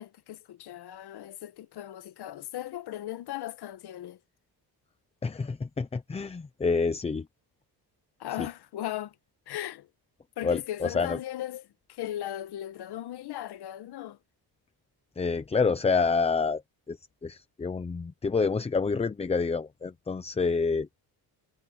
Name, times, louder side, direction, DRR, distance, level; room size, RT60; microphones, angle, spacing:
voice 1, 0.0-4.2 8.2-9.2 9.5-9.9 10.4-11.6 11.9-14.2, left 12 dB, 70° left, 1.5 m, -37 dB
voice 2, 5.2-7.3 8.4-8.5 10.4-11.2 15.2-16.6 16.9-20.9, left 4 dB, 15° left, 0.7 m, -28 dB
cardioid pair, 145°, 41 cm